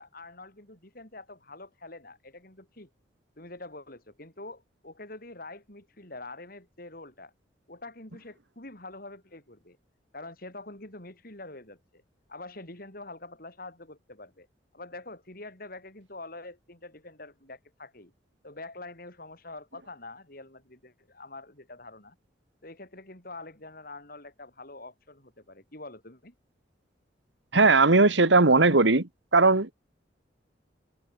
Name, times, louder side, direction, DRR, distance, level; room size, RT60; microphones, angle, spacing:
voice 1, 0.0-2.9 3.4-7.3 7.7-9.8 10.1-12.0 12.3-14.5 14.7-18.1 18.4-22.2 22.6-26.3, left 2 dB, 50° left, 5.8 m, -45 dB
voice 2, 27.5-29.7, right 3 dB, 75° right, 1.9 m, -19 dB
head